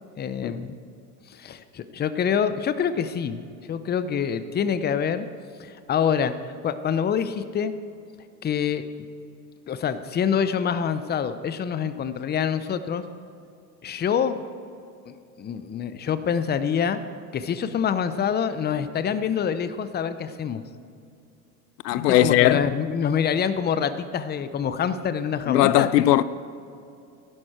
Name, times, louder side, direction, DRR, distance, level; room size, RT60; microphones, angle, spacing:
voice 1, 0.2-0.8 1.3-5.3 5.6-6.3 6.6-7.7 8.4-8.8 9.7-13.0 13.8-14.4 15.1-17.0 17.3-20.6 21.9-25.9, left 7 dB, 20° left, 0.7 m, -26 dB
voice 2, 21.8-22.7 25.5-26.2, left 13 dB, 75° left, 0.6 m, -19 dB
16.0 x 11.5 x 4.4 m
hypercardioid pair, 90°, 49 cm